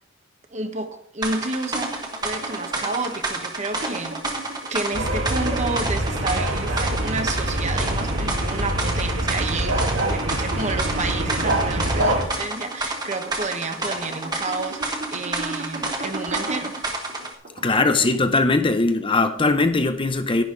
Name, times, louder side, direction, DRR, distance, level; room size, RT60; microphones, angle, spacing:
voice 1, 0.5-4.4 4.7-16.8, right 3 dB, 35° right, 1.3 m, -30 dB
sound 1, 1.2-17.3, right 2 dB, 20° right, 1.5 m, -30 dB
sound 2, 1.5-18.4, right 3 dB, 50° right, 2.5 m, -37 dB
sound 3, 4.9-12.2, right 1 dB, 80° right, 2.7 m, -25 dB
voice 2, 17.6-20.4, left 3 dB, 25° left, 0.7 m, -20 dB
11.0 x 10.0 x 3.9 m
head